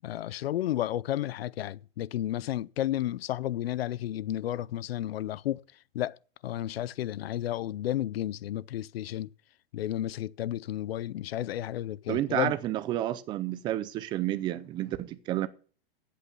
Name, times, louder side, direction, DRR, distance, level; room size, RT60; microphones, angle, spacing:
voice 1, 0.0-5.6 5.9-6.2 6.4-9.3 9.7-12.5, left 13 dB, 80° left, 0.6 m, -32 dB
voice 2, 12.1-15.5, right 13 dB, 15° right, 0.5 m, -30 dB
8.3 x 8.3 x 6.8 m
hypercardioid pair, 155°, 30 cm